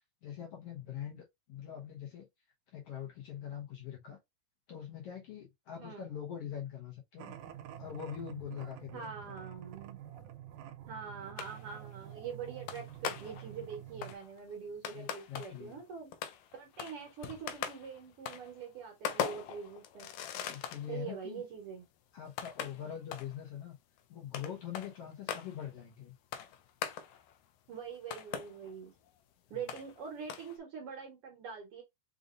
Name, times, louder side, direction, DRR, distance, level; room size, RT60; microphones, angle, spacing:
voice 1, 0.2-2.3 2.7-4.2 4.7-7.3 7.8-9.3 14.9-15.8 20.5-21.4 22.1-23.8 24.1-26.1 29.5-29.7, left 9 dB, 65° left, 1.7 m, -43 dB
sound 1, 7.2-14.2, right 11 dB, 85° right, 2.0 m, -48 dB
voice 2, 8.9-10.0 10.9-16.1 16.5-20.1 20.9-21.9 27.7-28.9 29.5-31.8, right 6 dB, 60° right, 1.7 m, -44 dB
sound 2, 11.4-12.0 12.7-13.6 14.0-15.8 16.1-20.9 21.4-21.5 22.3-23.4 24.0-24.1 24.3-25.7 26.3-27.4 27.7-28.8 29.1-29.2 29.7-30.0 30.3-30.6, left 9 dB, 85° left, 1.4 m, -41 dB
5.1 x 2.6 x 2.4 m
omnidirectional pair, 3.4 m